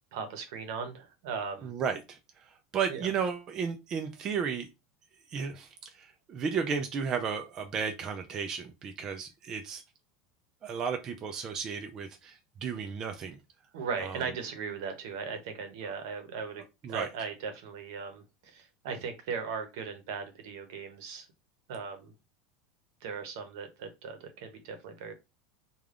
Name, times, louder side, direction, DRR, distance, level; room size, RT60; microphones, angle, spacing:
voice 1, 0.1-1.7 2.9-3.1 13.7-16.6 16.9-21.3 21.7-22.1 23.0-25.1, right 5 dB, 70° right, 0.8 m, -38 dB
voice 2, 1.6-2.2 2.7-4.7 5.3-5.7 5.9-9.8 10.6-13.4 14.0-14.2 16.8-17.1, right 6 dB, 30° right, 0.3 m, -33 dB
3.3 x 2.3 x 2.4 m
supercardioid pair, 155°, 2 cm